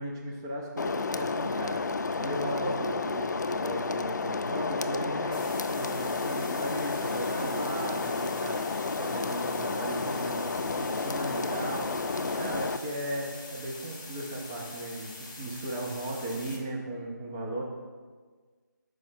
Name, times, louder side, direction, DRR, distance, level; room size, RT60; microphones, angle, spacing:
voice 1, 0.0-1.8 2.2-11.9 12.2-17.6, right 1 dB, 10° right, -1 dB, 0.3 m, -36 dB
sound 1, 0.8-12.8, left 4 dB, 65° left, 0.3 m, -31 dB
sound 2, 5.3-16.6, left 2 dB, 15° left, 0.7 m, -45 dB
6.4 x 4.6 x 4.3 m, 1.5 s
figure-of-eight pair, 160°, 10 cm